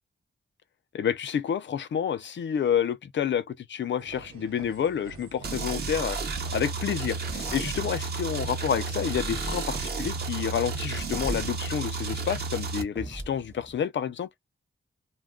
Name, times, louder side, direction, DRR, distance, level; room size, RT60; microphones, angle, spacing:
voice 1, 0.9-6.2 6.5-14.3, left 8 dB, 60° left, 0.4 m, -29 dB
sound 1, 4.0-11.9, right 5 dB, 85° right, 0.7 m, -48 dB
sound 2, 5.4-12.8, right 4 dB, 50° right, 0.8 m, -32 dB
sound 3, 7.3-8.0 8.4-13.7, right 1 dB, 10° right, 0.7 m, -43 dB
2.2 x 2.1 x 3.6 m
wide cardioid pair, 105°, 21 cm